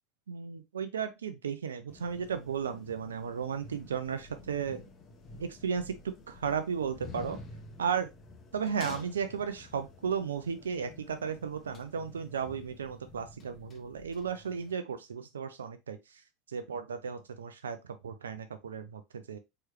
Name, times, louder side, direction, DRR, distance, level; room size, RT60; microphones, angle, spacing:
voice 1, 0.3-4.8 5.4-7.4 7.8-8.1 8.5-16.2 16.5-19.0 19.3-19.4, right 6 dB, 80° right, 0.5 m, -34 dB
sound 1, 1.9-14.7, left 3 dB, 35° left, 1.0 m, -50 dB
4.6 x 3.1 x 3.0 m
hypercardioid pair, 80°, 0 cm